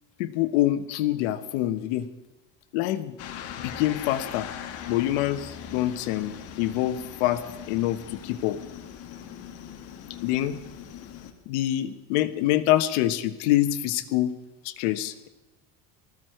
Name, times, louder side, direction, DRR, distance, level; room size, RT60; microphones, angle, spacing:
voice 1, 0.2-2.1 2.7-3.2 3.6-4.5 4.9-8.6 10.2-10.6 11.5-14.3 14.6-15.3, left 14 dB, 75° left, 10 dB, 1.4 m, -26 dB
sound 1, 3.2-11.3, left 9 dB, 45° left, 1.8 m, -40 dB
19.0 x 14.5 x 4.6 m, 1.0 s
cardioid pair, 155°, 34 cm